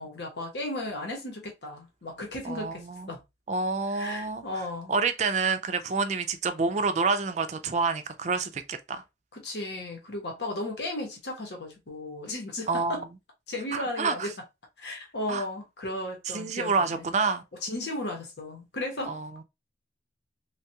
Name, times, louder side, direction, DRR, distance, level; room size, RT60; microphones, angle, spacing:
voice 1, 0.0-3.2 3.9-5.0 9.3-13.0 13.5-14.3 14.8-17.1 17.6-19.2, left 1 dB, 75° left, 0.9 m, -35 dB
voice 2, 2.5-3.1 3.5-4.4 4.9-9.0 12.7-13.0 13.7-14.3 15.3-15.4 16.3-17.4 19.1-19.4, right 4 dB, 40° right, 0.3 m, -28 dB
3.2 x 2.3 x 2.7 m
head